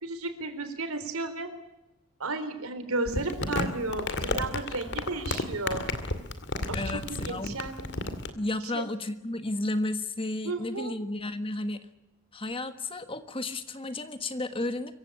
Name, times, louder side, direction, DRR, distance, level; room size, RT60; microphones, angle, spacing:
voice 1, 0.0-1.5 2.2-5.8 6.7-7.9 8.7-8.8 10.4-11.0, right 2 dB, 80° right, 9 dB, 3.8 m, -33 dB
Crumpling crinkling, 3.1-8.3, left 2 dB, 55° left, 2.3 m, -32 dB
voice 2, 6.7-7.6 8.3-11.8 12.3-15.0, left 2 dB, 25° left, 10 dB, 1.4 m, -33 dB
25.0 x 16.0 x 10.0 m, 0.89 s
head